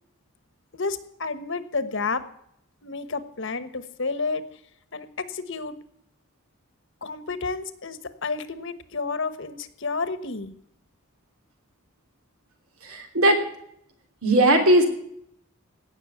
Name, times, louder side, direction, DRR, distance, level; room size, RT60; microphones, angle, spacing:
voice 1, 0.7-2.2 2.8-4.4 4.9-5.7 7.0-10.5, left 4 dB, 60° left, 12 dB, 1.2 m, -30 dB
voice 2, 12.8-13.4 14.2-14.9, right 1 dB, 85° right, 4 dB, 3.2 m, -18 dB
17.5 x 6.6 x 9.2 m, 0.72 s
head